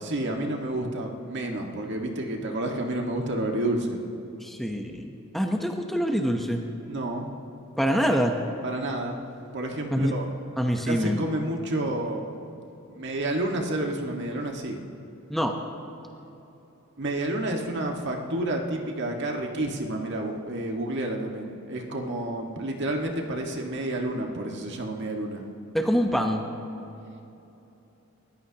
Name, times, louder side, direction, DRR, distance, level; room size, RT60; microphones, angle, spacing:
voice 1, 0.0-4.0 6.9-7.3 8.6-9.2 9.5-10.3 10.9-12.4 12.9-14.8 17.0-25.4, right 1 dB, 55° right, 1 dB, 1.7 m, -30 dB
voice 2, 4.4-6.6 7.8-8.3 9.9-10.1 10.6-11.2 15.3-15.5 25.7-26.5, equal, ahead, 2 dB, 0.9 m, -25 dB
29.5 x 14.5 x 2.9 m, 2.9 s
head